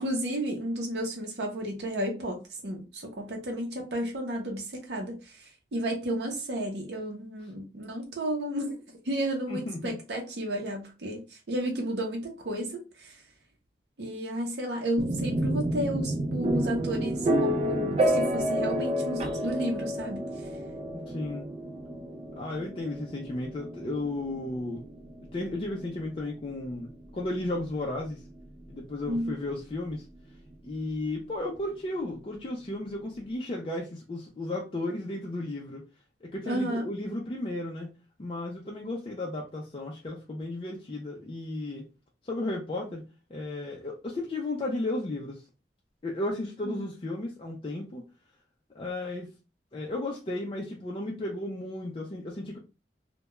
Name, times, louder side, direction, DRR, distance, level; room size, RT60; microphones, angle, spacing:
voice 1, 0.0-13.2 14.0-20.3 29.0-29.4 36.5-36.9 46.6-46.8, right 1 dB, 70° right, 0.6 m, -33 dB
voice 2, 9.5-10.0 20.9-21.5 22.4-24.8 25.3-28.2 28.7-30.0 30.6-35.8 36.2-37.9 38.2-41.8 42.2-43.0 43.3-45.4 46.0-48.1 48.7-49.3 49.7-52.6, left 2 dB, 30° left, 0.4 m, -34 dB
sound 1, 15.0-28.7, right 1 dB, 35° right, 0.4 m, -30 dB
2.3 x 2.1 x 2.9 m
head